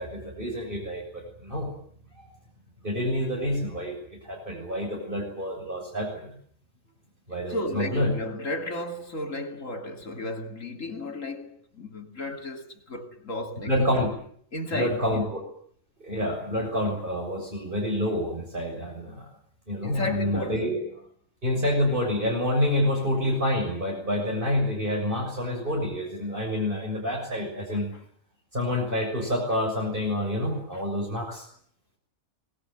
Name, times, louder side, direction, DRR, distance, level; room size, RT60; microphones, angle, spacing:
voice 1, 0.0-1.7 2.1-2.3 2.8-4.0 4.2-6.3 7.3-8.1 13.7-14.1 14.7-15.4 16.0-19.3 19.7-20.8 21.4-27.9 28.5-31.5, left 1 dB, 40° right, 7.1 m, -28 dB
voice 2, 7.5-13.9 14.5-15.3 16.2-16.3 19.8-20.8 27.9-28.0 30.7-30.8, left 2 dB, 75° left, 3.4 m, -34 dB
25.5 x 21.0 x 9.2 m
omnidirectional pair, 1.4 m